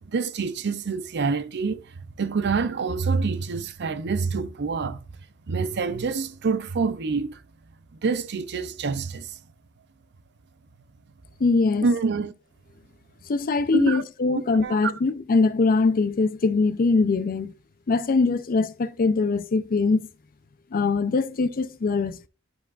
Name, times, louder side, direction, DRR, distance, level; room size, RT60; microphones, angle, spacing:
voice 1, 0.0-1.8 2.2-5.0 5.5-7.4 8.0-9.4 11.8-12.3 13.7-14.0 14.3-14.9, right 4 dB, 55° right, 0.6 m, -26 dB
voice 2, 11.4-11.9 13.3-17.5 17.9-20.0 20.7-22.3, left 3 dB, 45° left, 0.5 m, -22 dB
11.0 x 4.7 x 2.4 m
head